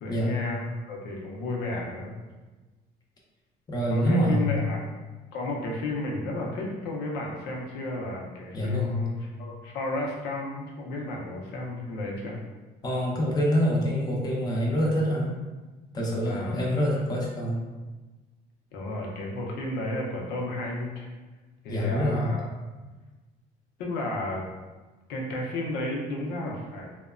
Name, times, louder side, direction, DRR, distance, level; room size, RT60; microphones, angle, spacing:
voice 1, 0.0-2.1 3.9-4.8 5.3-12.4 16.2-16.6 18.7-21.1 21.6-22.5 23.8-24.4 25.1-26.9, left 2 dB, 85° left, -1 dB, 0.6 m, -33 dB
voice 2, 3.7-4.5 8.5-9.0 12.8-15.3 15.9-17.6 21.7-22.3, equal, 25° left, -3 dB, 0.6 m, -25 dB
2.7 x 2.1 x 2.4 m, 1.2 s
cardioid pair, 110°, 17 cm